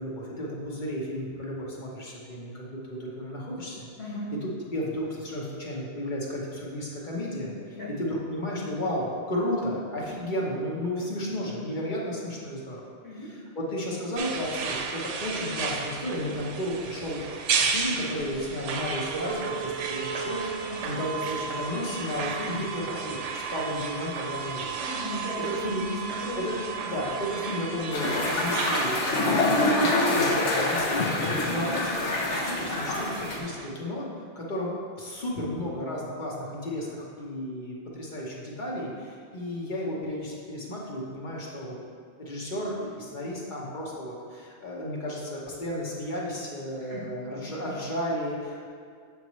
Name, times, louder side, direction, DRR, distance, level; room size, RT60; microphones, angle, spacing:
voice 1, 0.0-3.9 4.3-4.4 4.7-7.5 7.9-12.8 13.2-17.2 17.6-20.4 20.8-24.7 25.4-25.9 26.4-26.5 26.8-31.2 31.5-34.1 34.3-34.7 35.0-41.8 42.2-48.7, left 1 dB, 45° left, -4 dB, 1.1 m, -33 dB
voice 2, 4.0-4.3 7.7-7.9 13.0-13.3 20.6-20.8 24.8-26.9 31.3-31.6 46.8-47.1 47.4-47.7, equal, 60° left, -7 dB, 1.6 m, -37 dB
sound 1, 14.2-33.7, right 5 dB, 85° right, 0.9 m, -33 dB
sound 2, 27.9-33.4, left 2 dB, 80° left, 1.2 m, -26 dB
7.2 x 5.5 x 3.1 m, 2.2 s
omnidirectional pair, 1.2 m